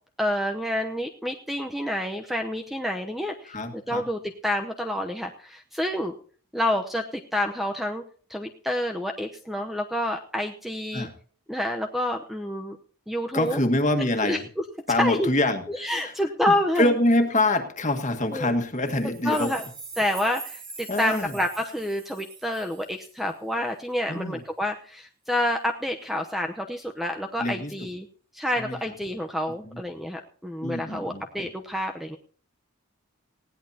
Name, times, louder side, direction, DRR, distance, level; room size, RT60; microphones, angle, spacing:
voice 1, 0.2-6.1 6.5-8.0 8.3-11.1 11.5-12.8 13.1-13.6 14.2-14.4 15.0-15.3 15.7-16.9 18.3-18.5 19.2-19.6 20.0-28.1 28.3-32.2, left 1 dB, ahead, 4 dB, 0.8 m, -28 dB
voice 2, 3.5-4.0 10.9-11.1 13.3-14.5 14.9-16.1 16.5-19.5 20.9-21.3 24.1-24.4 27.4-27.7 28.6-28.8 29.6-29.8 30.6-31.2, left 1 dB, 35° left, 6 dB, 1.7 m, -25 dB
sound 1, 18.9-23.3, right 4 dB, 20° right, 3.2 m, -43 dB
19.5 x 16.5 x 2.8 m, 0.44 s
head